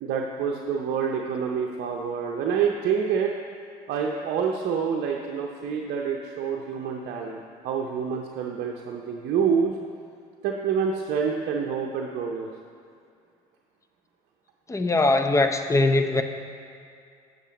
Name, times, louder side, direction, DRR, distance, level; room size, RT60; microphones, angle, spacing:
voice 1, 0.0-3.3 3.9-9.7 10.4-12.5, right 6 dB, 55° right, 0 dB, 0.7 m, -27 dB
voice 2, 14.7-16.2, left 2 dB, 15° left, 7 dB, 0.6 m, -21 dB
7.9 x 7.3 x 4.1 m, 2.4 s
hypercardioid pair, 60°, 20 cm